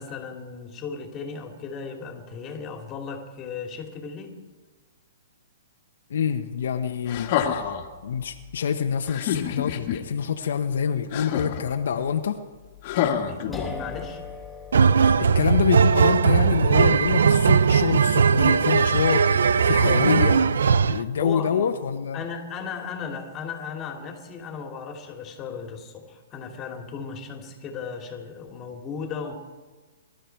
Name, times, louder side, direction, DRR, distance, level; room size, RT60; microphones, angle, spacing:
voice 1, 0.0-4.4 13.2-14.2 20.9-21.7 22.1-29.3, left 5 dB, 25° left, 4 dB, 2.6 m, -36 dB
voice 2, 6.1-7.6 8.0-12.4 15.2-20.4 20.8-22.2, left 7 dB, 70° left, 6 dB, 1.1 m, -26 dB
sound 1, 7.1-7.9 9.1-10.0 11.1-11.8 12.8-14.0 15.0-15.1, left 9 dB, 45° left, 1.8 m, -28 dB
sound 2, 13.5-21.1, left 4 dB, ahead, 3.1 m, -43 dB
sound 3, 14.7-21.0, right 6 dB, 80° right, 0.6 m, -19 dB
24.0 x 13.0 x 4.6 m, 1.3 s
hypercardioid pair, 140°, 0 cm